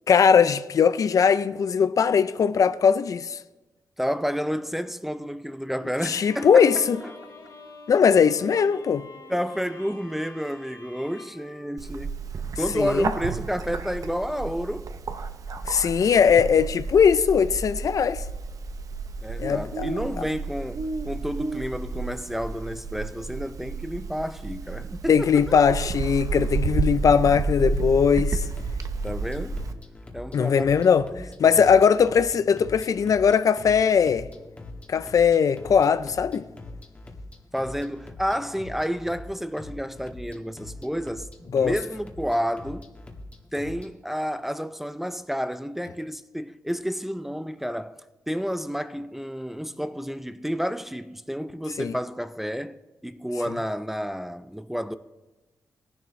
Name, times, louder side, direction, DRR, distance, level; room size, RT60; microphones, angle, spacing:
voice 1, 0.1-3.4 6.1-7.0 7.9-9.1 12.7-13.1 15.7-18.2 19.4-19.9 25.1-28.4 30.3-31.0 31.4-34.3 34.9-36.4 41.5-41.7 51.8-51.9, left 6 dB, 55° left, 0.5 m, -20 dB
voice 2, 4.0-7.1 9.3-12.2 12.6-14.9 19.2-25.6 29.0-29.7 30.1-31.3 37.5-42.9 43.5-48.0 48.3-55.0, equal, 5° right, 0.4 m, -30 dB
Bowed string instrument, 6.2-12.5, left 3 dB, 85° left, 3.4 m, -47 dB
Bird, 11.8-29.7, right 4 dB, 55° right, 0.7 m, -31 dB
sound 1, 28.4-43.9, left 2 dB, 20° left, 1.6 m, -43 dB
18.0 x 11.0 x 3.2 m
wide cardioid pair, 110°, 7 cm